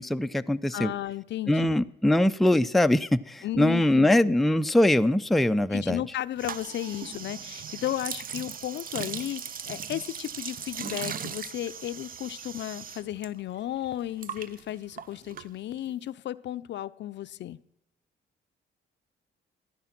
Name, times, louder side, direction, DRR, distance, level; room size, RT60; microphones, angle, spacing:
voice 1, 0.0-0.9 1.5-6.0, left 1 dB, ahead, 10 dB, 0.4 m, -22 dB
voice 2, 0.7-1.7 3.4-4.3 5.7-17.6, left 12 dB, 65° left, 15 dB, 0.5 m, -34 dB
sound 1, 6.4-13.3 13.5-15.9, right 7 dB, 45° right, 0.6 m, -38 dB
15.0 x 10.5 x 5.9 m, 0.82 s
cardioid pair, 90°, 20 cm